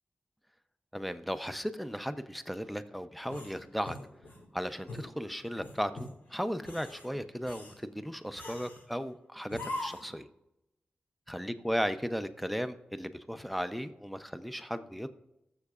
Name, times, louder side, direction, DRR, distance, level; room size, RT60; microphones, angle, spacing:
voice 1, 0.9-4.0 4.5-10.3 11.3-15.1, equal, ahead, 11 dB, 0.6 m, -36 dB
sound 1, 3.3-4.5 4.9-5.1 5.6-6.1 6.6-7.1 7.4-7.8 8.4-8.8 9.5-10.2, left 1 dB, 75° left, 1.8 m, -42 dB
20.0 x 7.2 x 2.4 m, 0.88 s
wide cardioid pair, 75°, 3 cm